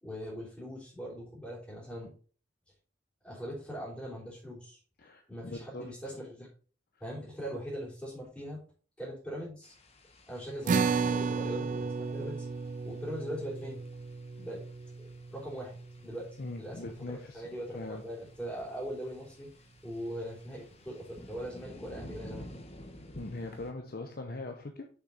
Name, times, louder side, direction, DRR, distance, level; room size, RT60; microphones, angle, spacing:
voice 1, 0.0-2.1 3.2-4.8 5.3-6.5 7.0-8.6 9.0-9.7 10.3-12.5 12.9-13.8 14.3-14.6 15.0-15.8 16.0-16.3 16.6-19.5 19.8-22.5, equal, 5° left, -10 dB, 3.5 m, -41 dB
voice 2, 5.0-5.9 16.4-17.4 17.7-18.0 23.1-24.9, left 2 dB, 55° left, 5 dB, 0.8 m, -41 dB
sound 1, 9.6-23.7, left 1 dB, 35° left, 1.2 m, -53 dB
sound 2, 10.7-17.3, right 5 dB, 45° right, 0.4 m, -34 dB
6.5 x 6.0 x 4.0 m, 0.41 s
head